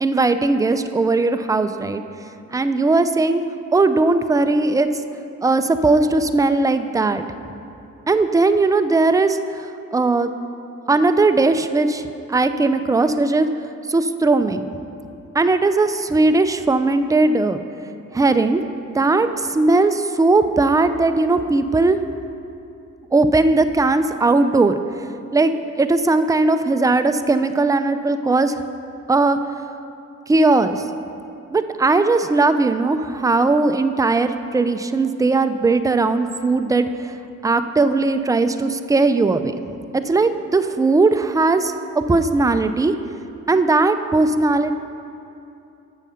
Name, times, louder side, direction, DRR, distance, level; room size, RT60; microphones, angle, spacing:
voice 1, 0.0-2.0 2.5-3.4 3.7-4.9 5.4-7.2 8.1-10.3 10.9-13.5 13.9-14.7 15.3-17.6 18.1-18.6 18.9-22.0 23.1-24.7 25.3-25.5 25.8-28.6 29.1-29.4 30.3-30.9 31.5-37.1 37.4-39.5 39.9-42.9 43.5-44.7, right 3 dB, 10° right, 9 dB, 0.4 m, -18 dB
7.4 x 7.2 x 5.7 m, 2.7 s
cardioid pair, 90°, 30 cm